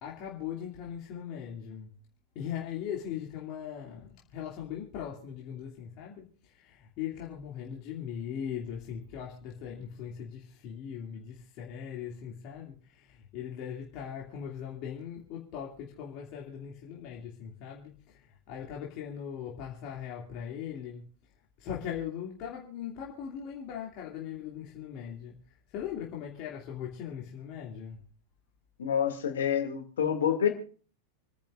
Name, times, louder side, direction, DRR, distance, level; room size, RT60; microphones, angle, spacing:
voice 1, 0.0-2.0 2.3-21.0 21.6-25.3 25.7-28.0, left 9 dB, 40° left, 2.6 m, -40 dB
voice 2, 28.8-30.5, left 8 dB, 65° left, 2.5 m, -27 dB
29.0 x 10.5 x 2.6 m
figure-of-eight pair, 90°, 0 cm